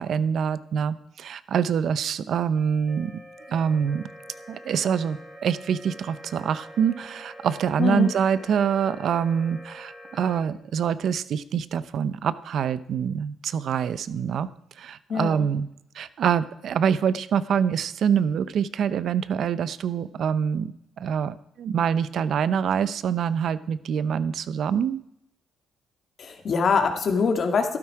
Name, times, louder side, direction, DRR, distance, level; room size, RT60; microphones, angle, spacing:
voice 1, 0.0-3.1 3.5-4.0 4.5-14.5 14.8-15.7 15.9-25.0, right 7 dB, 65° right, 16 dB, 0.7 m, -25 dB
sound 1, 2.6-10.4, equal, 20° right, 2.3 m, -45 dB
voice 2, 7.8-8.1 15.1-15.5 26.2-27.8, left 5 dB, 55° left, 5 dB, 2.1 m, -23 dB
13.5 x 12.0 x 4.8 m, 0.79 s
cardioid pair, 90°, 0 cm